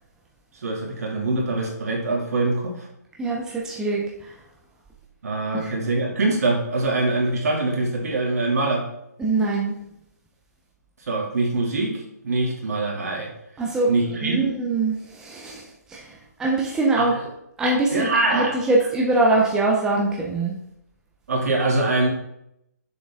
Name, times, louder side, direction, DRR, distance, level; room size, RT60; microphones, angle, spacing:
voice 1, 0.6-2.9 5.2-8.9 11.1-11.9 12.2-13.3 13.9-14.5 17.0-17.1 17.9-18.5 21.3-22.1, right 2 dB, 60° right, -1 dB, 2.3 m, -23 dB
voice 2, 3.2-4.3 5.5-5.7 9.2-9.7 13.6-13.9 14.2-17.1 17.6-20.6, right 2 dB, 5° right, -2 dB, 0.6 m, -23 dB
6.8 x 5.2 x 3.5 m, 0.79 s
hypercardioid pair, 155°, 9 cm